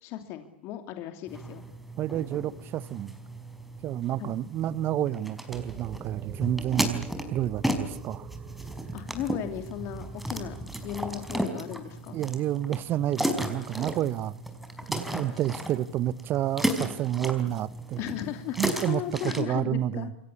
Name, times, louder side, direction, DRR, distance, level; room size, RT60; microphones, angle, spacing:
voice 1, 0.0-1.6 4.2-4.3 8.9-10.6 10.8-12.2 18.0-20.1, left 11 dB, 45° left, 2.9 m, -36 dB
sound 1, 1.3-19.4, right 1 dB, ahead, 5.0 m, -35 dB
voice 2, 2.0-3.1 3.8-8.3 12.1-14.4 14.9-18.1 18.6-20.1, right 12 dB, 40° right, 1.1 m, -30 dB
sound 2, 5.5-11.4, right 5 dB, 20° right, 3.3 m, -44 dB
28.5 x 23.5 x 8.6 m
hypercardioid pair, 95°, 6 cm